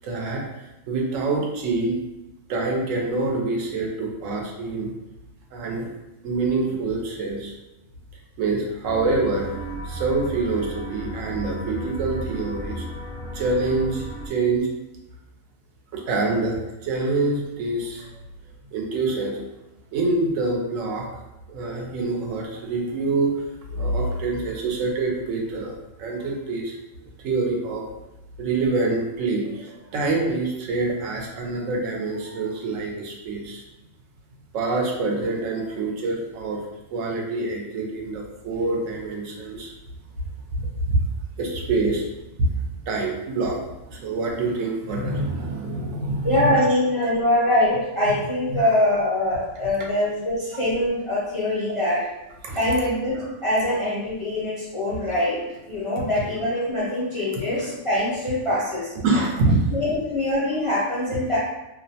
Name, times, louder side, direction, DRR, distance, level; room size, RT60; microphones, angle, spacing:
voice 1, 0.0-0.4 0.9-1.9 2.5-4.9 5.5-5.9 6.2-7.5 8.4-9.5 9.8-12.8 13.3-14.7 15.9-18.2 18.7-19.4 19.9-21.1 21.5-23.4 23.7-25.7 26.0-27.8 28.4-33.6 34.5-36.6 36.9-39.7 40.5-41.0 41.4-42.1 42.4-42.5 42.9-43.6 43.9-46.5 48.5-48.6 52.4-52.6 59.0-59.7, right 3 dB, 85° right, 0 dB, 1.0 m, -25 dB
sound 1, 8.8-14.3, right 2 dB, 30° right, 0.6 m, -34 dB
voice 2, 46.2-52.0 52.5-58.9 59.7-61.4, left 1 dB, 40° left, -9 dB, 0.4 m, -23 dB
2.5 x 2.1 x 2.6 m, 0.97 s
omnidirectional pair, 1.3 m